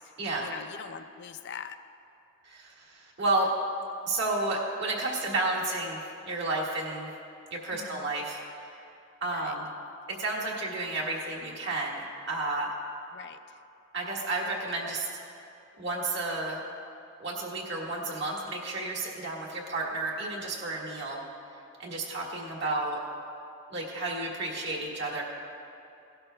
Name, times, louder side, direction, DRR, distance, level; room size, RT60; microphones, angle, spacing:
voice 1, 0.4-1.8 7.7-8.1 9.3-9.5 13.1-13.6 22.6-22.8, left 7 dB, 60° left, 9 dB, 0.5 m, -43 dB
voice 2, 2.5-3.5 4.1-7.1 7.5-8.7 9.2-9.7 10.1-12.7 13.9-15.1 15.8-16.6 17.2-21.2 21.8-23.0 23.7-25.2, right 2 dB, 60° right, -2 dB, 1.7 m, -31 dB
17.0 x 11.5 x 2.2 m, 2.7 s
head